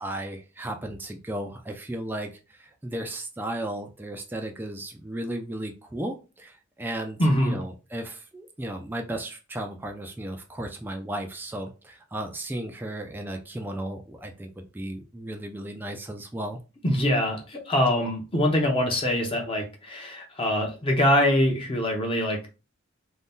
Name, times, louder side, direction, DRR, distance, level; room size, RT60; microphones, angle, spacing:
voice 1, 0.0-16.6, right 1 dB, 10° right, 3 dB, 0.3 m, -35 dB
voice 2, 7.2-7.6 16.8-22.5, left 1 dB, 25° left, 1 dB, 0.6 m, -24 dB
2.6 x 2.2 x 3.5 m, 0.31 s
head